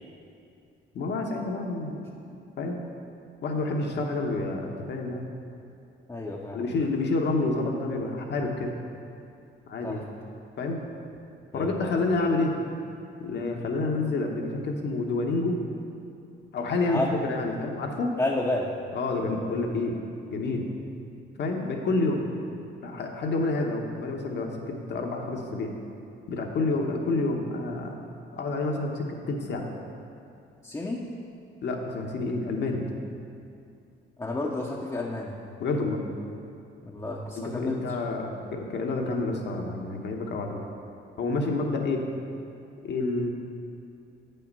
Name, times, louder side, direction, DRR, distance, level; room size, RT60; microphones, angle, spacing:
voice 1, 0.9-2.1 2.6-2.8 3.4-5.3 6.5-8.7 9.7-10.0 10.6-10.8 11.5-12.5 13.2-15.6 16.5-18.2 18.9-20.0 20.3-20.7 21.4-22.2 22.8-25.7 26.3-27.9 28.3-29.7 31.6-32.9 35.6-36.0 37.4-40.5 41.2-42.0 42.8-43.3, left 3 dB, 60° left, 2 dB, 1.1 m, -28 dB
voice 2, 6.1-6.7 9.8-10.0 11.5-11.9 16.9-17.1 18.2-18.7 30.6-31.0 34.2-35.3 36.8-37.8, left 2 dB, 15° left, -4 dB, 0.7 m, -31 dB
7.9 x 5.6 x 5.4 m, 2.6 s
cardioid pair, 90°, 20 cm